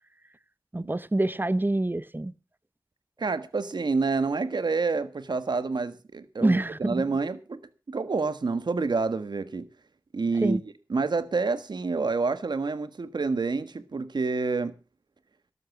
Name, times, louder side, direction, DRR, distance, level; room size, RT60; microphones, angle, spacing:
voice 1, 0.7-2.3 6.4-7.0 10.4-10.6, right 2 dB, 30° right, 0.9 m, -26 dB
voice 2, 3.2-7.6 7.9-9.7 10.1-10.6 10.9-14.7, right 4 dB, 80° right, 1.5 m, -28 dB
12.5 x 12.5 x 5.9 m
cardioid pair, 45°, 7 cm